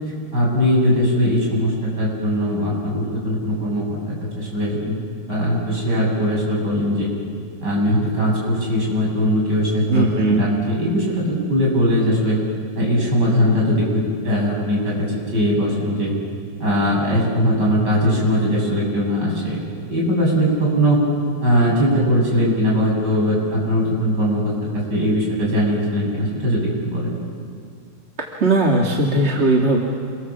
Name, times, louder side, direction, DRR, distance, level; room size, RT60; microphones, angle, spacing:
voice 1, 0.3-4.9 5.3-7.1 7.6-12.4 12.8-16.1 16.6-19.6 19.9-21.0 21.4-27.1, equal, 50° right, -3 dB, 7.8 m, -20 dB
voice 2, 9.9-10.4 28.2-29.8, right 2 dB, 30° right, -1 dB, 2.1 m, -18 dB
28.5 x 24.0 x 7.4 m, 2.2 s
omnidirectional pair, 2.4 m